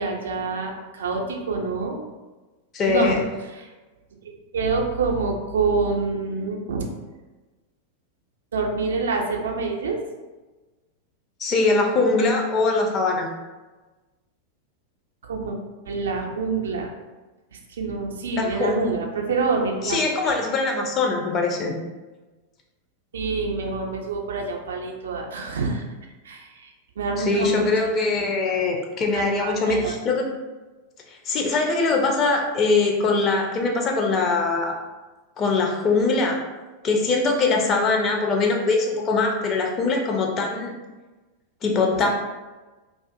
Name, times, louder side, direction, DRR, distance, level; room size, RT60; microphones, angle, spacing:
voice 1, 0.0-2.0 2.8-3.7 4.5-6.9 8.5-10.0 15.2-15.6 15.9-16.9 17.5-20.0 20.2-20.4 23.1-25.9 26.2-27.7 28.1-28.7 29.0-30.0 41.9-42.1, right 4 dB, 65° right, 1 dB, 0.4 m, -27 dB
voice 2, 2.7-3.2 11.4-13.3 18.4-18.7 19.8-21.7 27.2-30.3 31.1-34.7 35.4-36.4 36.8-40.7 41.6-42.1, left 3 dB, 30° left, 1 dB, 0.4 m, -22 dB
2.4 x 2.4 x 2.5 m, 1.2 s
figure-of-eight pair, 90°, 0 cm